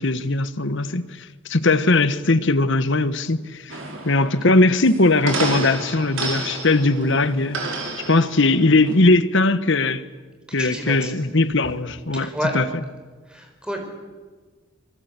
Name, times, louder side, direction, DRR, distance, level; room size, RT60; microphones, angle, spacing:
voice 1, 0.0-3.8 4.0-7.6 8.1-10.0 10.5-12.3 12.5-12.7, left 2 dB, 60° left, 1.3 m, -19 dB
sound 1, 3.7-9.0, right 3 dB, 65° right, 5.1 m, -30 dB
voice 2, 10.6-11.1 12.1-12.6 13.3-13.8, equal, 5° right, 4.8 m, -29 dB
26.0 x 22.5 x 8.3 m
head